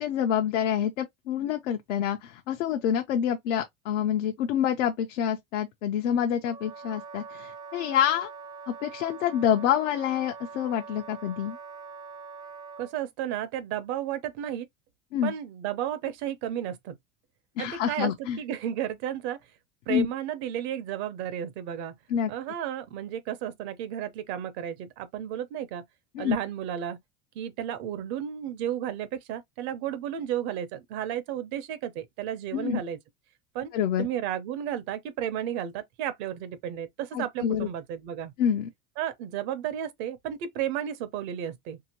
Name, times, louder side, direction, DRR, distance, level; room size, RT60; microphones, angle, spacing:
voice 1, 0.0-8.3 8.7-11.6 15.1-15.3 17.6-18.4 19.9-20.1 22.1-22.3 26.1-26.4 32.5-32.8 33.7-34.1 37.1-37.7 38.4-38.7, left 9 dB, 85° left, 0.7 m, -27 dB
Wind instrument woodwind instrument, 6.4-12.9, right 5 dB, 10° right, 0.4 m, -43 dB
voice 2, 12.8-14.7 15.2-17.0 17.6-18.1 18.4-19.4 19.9-21.9 22.3-25.8 26.2-27.0 27.3-33.0 33.5-33.7 34.0-38.3 39.0-41.8, right 10 dB, 60° right, 0.8 m, -33 dB
2.8 x 2.8 x 2.8 m
supercardioid pair, 125°, 36 cm